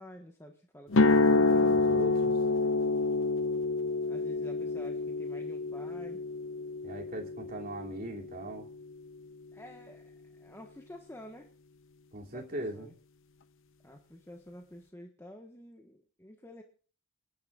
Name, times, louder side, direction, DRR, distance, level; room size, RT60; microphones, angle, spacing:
voice 1, 0.0-1.8 4.1-6.2 9.5-11.5 12.2-12.9 13.8-16.6, left 1 dB, 10° left, 2 dB, 1.4 m, -50 dB
sound 1, 0.9-8.9, left 3 dB, 60° left, 0.7 m, -28 dB
voice 2, 1.3-2.4 6.8-8.7 12.1-12.9, right 1 dB, 40° right, 0 dB, 2.8 m, -40 dB
28.0 x 10.0 x 2.5 m, 0.39 s
head